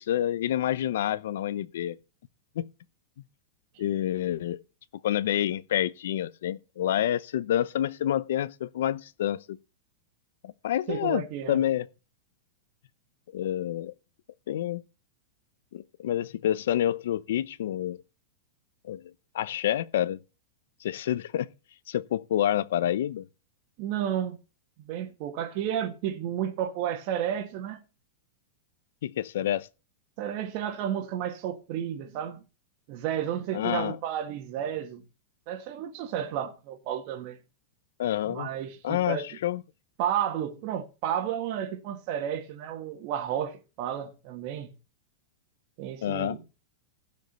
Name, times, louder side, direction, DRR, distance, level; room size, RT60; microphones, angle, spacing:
voice 1, 0.0-2.0 2.6-2.7 3.8-4.6 5.0-9.6 10.4-11.9 13.3-13.9 14.5-14.8 15.7-18.0 18.8-19.0 19.3-20.2 20.8-21.5 21.9-23.3 29.0-29.7 33.5-34.0 38.0-38.5 38.8-39.6 46.0-46.4, left 11 dB, 75° left, 0.7 m, -28 dB
voice 2, 10.9-11.6 23.8-24.4 24.8-27.8 30.2-32.4 32.9-35.0 35.5-37.4 38.3-39.3 40.0-44.7 45.8-46.5, right 10 dB, 45° right, 1.9 m, -32 dB
16.0 x 5.3 x 6.8 m
supercardioid pair, 150°, 0 cm